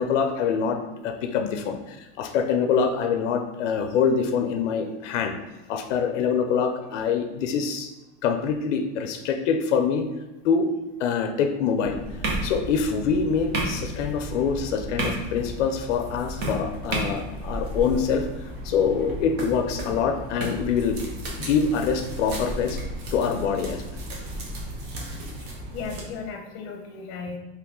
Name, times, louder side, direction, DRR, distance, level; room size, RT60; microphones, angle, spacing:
voice 1, 0.0-5.4 5.7-7.9 8.2-10.1 10.4-10.7 11.0-12.0 12.4-18.3 18.6-21.0 21.4-22.8 23.1-23.8, left 6 dB, 85° left, 6 dB, 0.5 m, -25 dB
sound 1, 11.8-26.0, right 1 dB, 55° right, 1.1 m, -33 dB
voice 2, 25.4-27.4, left 5 dB, 35° left, 3 dB, 0.7 m, -36 dB
3.3 x 3.0 x 3.6 m, 1.1 s
supercardioid pair, 135°, 36 cm